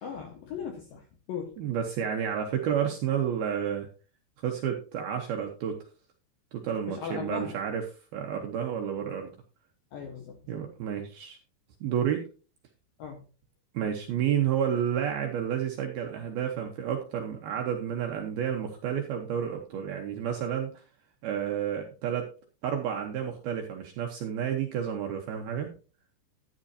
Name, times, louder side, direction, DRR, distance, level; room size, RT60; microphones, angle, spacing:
voice 1, 0.0-1.6 6.9-7.6 9.9-10.4 13.0-13.2, left 7 dB, 70° left, 3 dB, 2.2 m, -38 dB
voice 2, 1.6-3.9 4.4-5.8 6.5-7.9 8.1-9.3 10.5-11.4 11.8-12.3 13.7-20.7 21.2-22.3 22.6-25.7, right 8 dB, 75° right, 2 dB, 2.4 m, -30 dB
13.0 x 10.0 x 2.8 m, 0.34 s
omnidirectional pair, 5.7 m